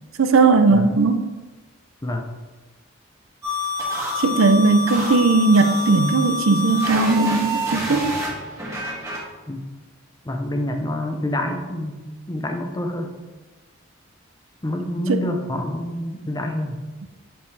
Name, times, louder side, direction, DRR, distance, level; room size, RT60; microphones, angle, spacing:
voice 1, 0.2-1.3 4.2-8.2 15.1-15.2, right 3 dB, 80° right, 8 dB, 0.5 m, -17 dB
voice 2, 0.7-1.0 2.0-2.3 9.5-9.7 10.2-12.0 12.3-13.2 14.6-16.8, left 1 dB, 20° left, 4 dB, 0.6 m, -27 dB
sound 1, 3.4-9.2, left 2 dB, 15° right, 1.4 m, -27 dB
6.9 x 5.2 x 3.3 m, 1.3 s
head